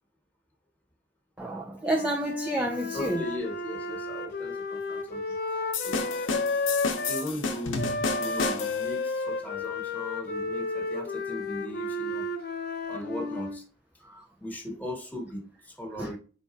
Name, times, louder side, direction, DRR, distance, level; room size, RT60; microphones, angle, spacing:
voice 1, 1.4-3.2 14.1-14.2 16.0-16.1, right 1 dB, 10° right, 0.3 m, -30 dB
Wind instrument woodwind instrument, 1.8-7.3 7.8-13.6, left 3 dB, 50° left, 0.6 m, -32 dB
voice 2, 2.9-5.2 5.8-6.0 7.1-7.9 8.2-12.2 12.9-13.6 14.4-16.2, left 1 dB, 10° left, 1.2 m, -38 dB
sound 1, 5.7-8.9, left 4 dB, 85° left, 0.8 m, -31 dB
4.3 x 4.1 x 2.3 m
head